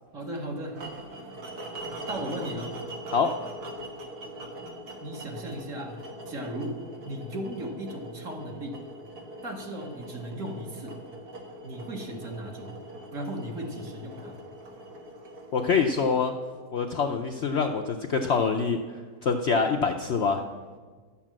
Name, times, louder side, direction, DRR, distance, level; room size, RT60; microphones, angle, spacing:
voice 1, 0.1-0.8 1.9-2.8 5.0-8.8 9.4-11.0 11.6-12.7 13.1-14.4, right 1 dB, 55° right, 1 dB, 1.9 m, -36 dB
sound 1, 0.7-16.9, right 1 dB, 75° right, 1.9 m, -42 dB
voice 2, 15.5-16.3 16.7-18.8 19.2-20.4, left 5 dB, 60° left, 4 dB, 0.7 m, -25 dB
11.5 x 7.1 x 7.4 m, 1.5 s
omnidirectional pair, 1.7 m